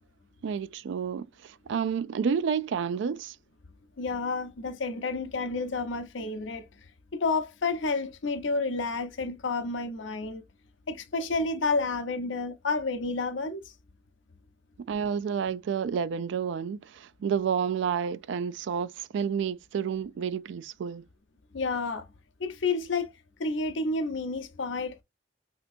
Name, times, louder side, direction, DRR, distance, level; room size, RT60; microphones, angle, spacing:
voice 1, 0.4-3.3 14.9-21.0, right 7 dB, 65° right, 0.3 m, -30 dB
voice 2, 4.0-6.7 7.1-10.4 10.9-13.7 21.5-22.1 22.4-23.1 23.4-25.0, left 3 dB, 75° left, 0.7 m, -30 dB
3.2 x 2.9 x 2.5 m
head